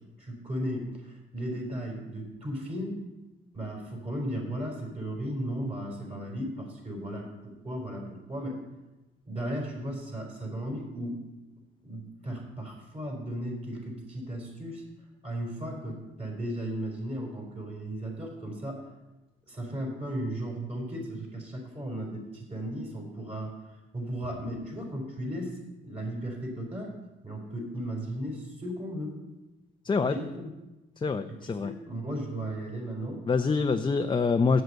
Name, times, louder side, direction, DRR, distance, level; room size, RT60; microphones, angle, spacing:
voice 1, 0.2-3.0 3.5-8.6 9.3-11.2 11.8-14.8 15.2-18.8 19.5-23.5 23.9-25.6 25.8-26.9 27.2-29.2 30.0-30.6 31.3-33.2, right 1 dB, 30° right, -1 dB, 4.0 m, -35 dB
voice 2, 31.0-31.7 33.3-34.6, left 4 dB, 25° left, 7 dB, 0.5 m, -25 dB
7.9 x 7.8 x 7.9 m, 1.0 s
cardioid pair, 90°, 20 cm